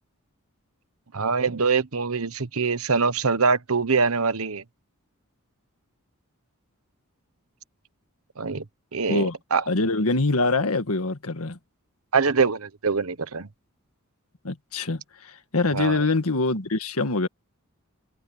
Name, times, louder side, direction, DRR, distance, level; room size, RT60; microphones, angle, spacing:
voice 1, 1.1-4.6 8.4-8.6 8.9-9.6 12.1-13.5 15.7-16.0, right 4 dB, 70° right, 1.1 m, -24 dB
voice 2, 9.7-11.6 14.4-17.3, left 3 dB, 75° left, 1.8 m, -24 dB
head